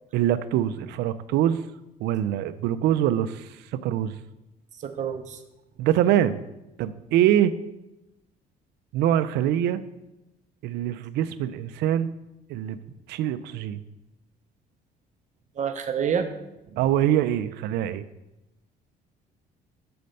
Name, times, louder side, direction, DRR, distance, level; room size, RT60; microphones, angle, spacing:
voice 1, 0.1-1.6 2.0-3.5 3.8-4.1 5.8-6.4 6.8-7.5 8.9-9.8 10.6-12.1 12.5-12.8 13.1-13.8 16.8-18.0, right 11 dB, 80° right, 12 dB, 0.4 m, -24 dB
voice 2, 4.8-5.4 15.6-16.3 16.7-16.8, right 7 dB, 45° right, 8 dB, 0.8 m, -28 dB
6.7 x 4.2 x 5.2 m, 0.94 s
cardioid pair, 110°, 17 cm